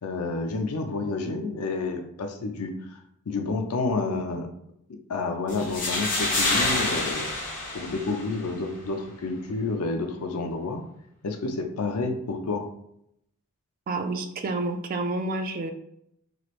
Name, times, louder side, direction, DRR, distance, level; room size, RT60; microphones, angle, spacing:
voice 1, 0.0-3.0 3.3-4.5 5.1-7.3 7.7-10.8 11.2-12.6, left 3 dB, 80° left, 5 dB, 0.5 m, -29 dB
sound 1, 5.5-8.5, left 2 dB, 35° left, 0.8 m, -27 dB
voice 2, 13.9-15.7, right 2 dB, 40° right, 6 dB, 0.3 m, -29 dB
3.1 x 3.0 x 2.5 m, 0.76 s
head